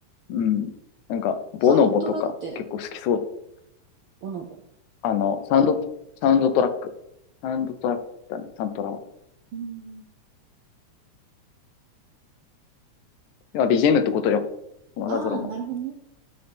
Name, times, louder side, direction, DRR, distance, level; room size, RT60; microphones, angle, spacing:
voice 1, 0.3-0.7 1.1-2.3 2.8-3.2 5.0-5.8 6.2-6.7 7.4-8.0 8.3-9.0 13.5-14.4 15.0-15.5, left 7 dB, 80° left, 9 dB, 2.1 m, -22 dB
voice 2, 1.6-2.6 4.2-4.6 9.5-10.1 15.1-16.0, right 5 dB, 75° right, 1 dB, 1.2 m, -33 dB
12.0 x 5.5 x 3.4 m, 0.83 s
omnidirectional pair, 3.4 m